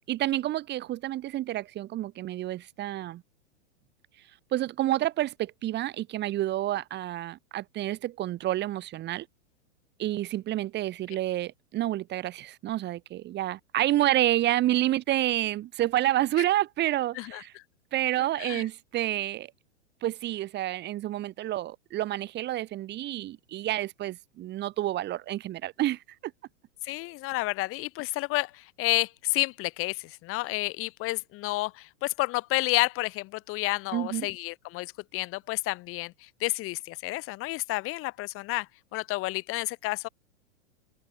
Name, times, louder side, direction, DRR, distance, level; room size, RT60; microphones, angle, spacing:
voice 1, 0.1-3.2 4.5-9.3 10.0-17.5 17.9-19.5 20.0-26.3 33.9-34.3, right 14 dB, 25° right, 3.6 m, -29 dB
voice 2, 17.2-17.6 18.4-18.6 26.8-40.1, left 20 dB, 35° left, 5.3 m, -30 dB
hypercardioid pair, 145°, 39 cm